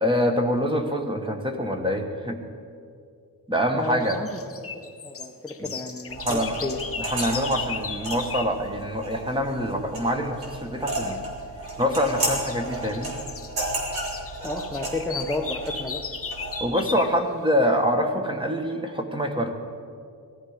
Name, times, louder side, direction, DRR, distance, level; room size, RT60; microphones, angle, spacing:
voice 1, 0.0-2.4 3.5-4.2 5.6-5.7 6.2-6.6 7.0-11.2 11.8-13.1 16.6-19.5, equal, 15° right, 4 dB, 1.3 m, -25 dB
voice 2, 3.7-4.4 4.7-6.8 14.4-16.0, left 2 dB, 5° left, 1 dB, 0.8 m, -32 dB
sound 1, 3.8-8.6 10.8-11.2 11.6-17.2, left 5 dB, 35° left, 0.8 m, -37 dB
sound 2, 6.1-16.6, right 1 dB, 70° right, 3.8 m, -33 dB
18.0 x 14.0 x 5.1 m, 2.3 s
wide cardioid pair, 145°, 38 cm